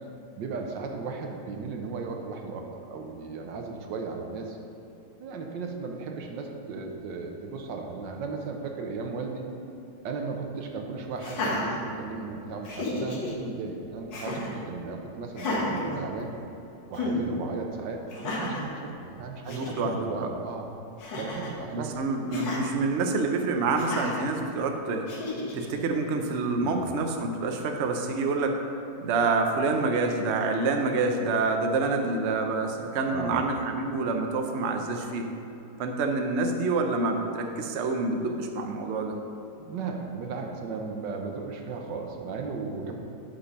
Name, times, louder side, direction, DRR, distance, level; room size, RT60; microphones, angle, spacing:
voice 1, 0.4-4.6 5.2-9.4 10.0-16.3 16.9-20.7 21.2-22.0 26.6-27.0 33.1-33.6 39.6-42.9, right 4 dB, 90° right, 3 dB, 1.6 m, -36 dB
Laughter, 11.2-12.3 12.6-13.3 14.1-14.6 15.3-16.6 16.9-17.2 18.1-18.7 19.2-19.3 19.5-19.9 21.0-21.6 22.3-22.6 23.8-24.2 25.1-25.7, left 2 dB, 90° left, 2.0 m, -32 dB
voice 2, 19.5-20.3 21.7-25.1 25.5-28.6 29.0-35.3 35.8-39.2, right 3 dB, 55° right, 4 dB, 0.8 m, -27 dB
8.8 x 5.5 x 5.3 m, 2.9 s
omnidirectional pair, 1.9 m